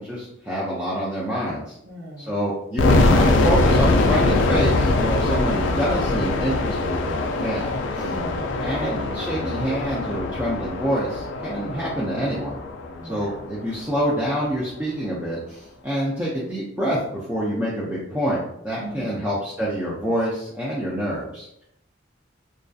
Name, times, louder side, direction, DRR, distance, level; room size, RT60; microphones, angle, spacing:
voice 1, 0.0-1.8 2.2-8.1 8.6-12.6 13.1-21.6, equal, 10° right, -7 dB, 0.4 m, -27 dB
voice 2, 1.8-2.4 8.0-9.0 13.0-13.4 18.8-19.2, right 1 dB, 65° right, -2 dB, 0.7 m, -39 dB
sound 1, 2.8-13.7, left 2 dB, 75° left, 0.3 m, -22 dB
2.5 x 2.4 x 2.2 m, 0.76 s
head